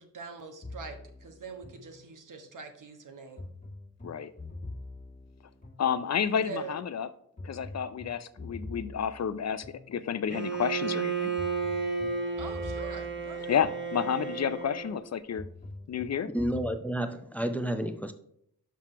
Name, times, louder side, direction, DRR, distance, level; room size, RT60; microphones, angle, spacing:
voice 1, 0.0-3.5 6.4-6.8 12.4-13.6, right 5 dB, 65° right, 1.3 m, -43 dB
sound 1, 0.6-2.5 3.4-6.4 7.4-10.5 11.4-14.4 15.4-16.7, left 2 dB, 20° left, 1.7 m, -45 dB
voice 2, 5.8-7.1 7.4-11.3 13.5-15.4 15.9-16.3, left 8 dB, 50° left, 0.5 m, -30 dB
Bowed string instrument, 10.3-15.0, right 5 dB, 35° right, 1.2 m, -33 dB
voice 3, 16.3-18.1, right 1 dB, 5° left, 0.5 m, -30 dB
6.1 x 5.8 x 4.4 m
cardioid pair, 75°, 34 cm